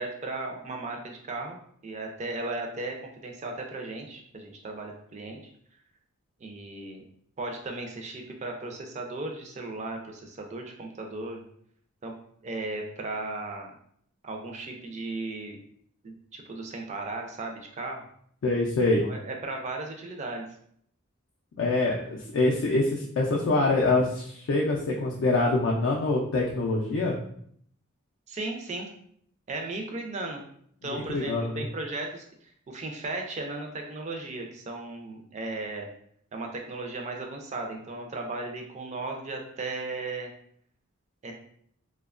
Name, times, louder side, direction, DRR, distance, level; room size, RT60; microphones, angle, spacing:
voice 1, 0.0-5.5 6.4-7.0 7.4-11.4 12.0-12.1 12.4-13.7 14.2-15.6 16.0-18.0 19.0-20.4 28.3-28.9 29.5-30.4 30.8-35.9 36.3-40.3 41.2-41.3, right 2 dB, 30° right, 2 dB, 0.4 m, -36 dB
voice 2, 18.4-19.0 21.6-27.2 30.8-31.7, left 2 dB, 60° left, -2 dB, 0.4 m, -25 dB
2.7 x 2.2 x 2.4 m, 0.65 s
head